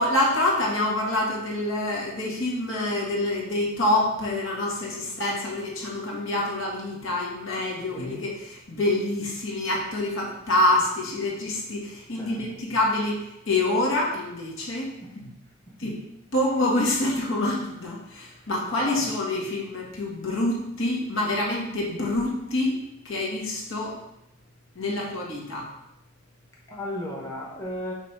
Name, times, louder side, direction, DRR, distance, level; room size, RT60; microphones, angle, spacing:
voice 1, 0.0-15.3 15.8-16.0 16.3-22.8 23.0-23.9 24.7-25.7, left 1 dB, 70° left, -3 dB, 1.6 m, -26 dB
voice 2, 26.7-27.9, left 1 dB, 15° left, -4 dB, 1.0 m, -35 dB
5.2 x 3.5 x 5.4 m, 0.85 s
head